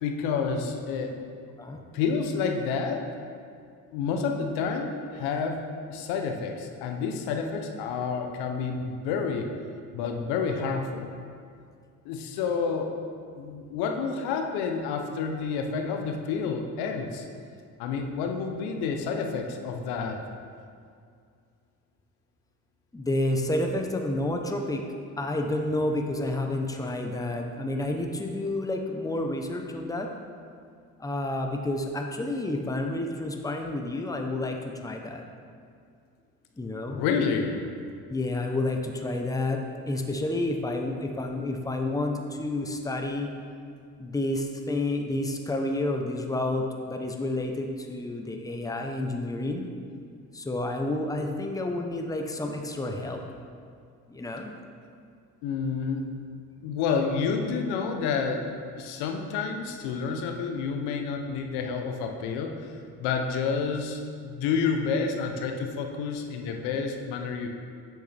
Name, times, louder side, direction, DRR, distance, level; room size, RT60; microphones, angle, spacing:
voice 1, 0.0-1.2 1.9-3.0 3.9-5.6 5.9-9.5 9.9-11.1 12.0-12.9 13.4-17.2 17.8-20.2 36.8-37.6 55.4-56.0 56.6-58.5 58.7-62.6 63.0-67.5, left 5 dB, 85° left, 4 dB, 0.8 m, -29 dB
voice 2, 22.9-24.8 25.2-30.1 31.0-35.3 36.6-37.0 38.1-43.3 44.0-49.7 50.3-53.2 54.1-54.5, left 2 dB, 10° left, 3 dB, 0.8 m, -30 dB
8.2 x 6.4 x 3.4 m, 2.3 s
supercardioid pair, 75°, 38 cm